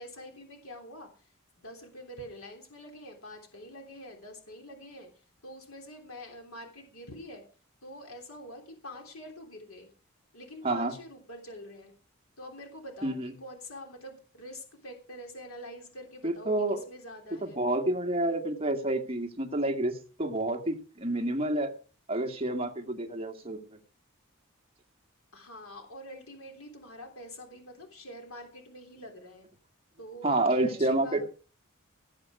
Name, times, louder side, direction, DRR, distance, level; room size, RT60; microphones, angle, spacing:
voice 1, 0.0-7.4 7.8-9.9 10.3-11.9 12.4-17.6 25.3-29.5 30.0-31.2, equal, 85° left, 3 dB, 3.3 m, -46 dB
voice 2, 13.0-13.3 16.2-16.8 17.4-21.7 22.1-23.6 30.2-31.2, right 2 dB, 25° right, 4 dB, 1.9 m, -29 dB
18.0 x 8.2 x 4.8 m, 0.39 s
head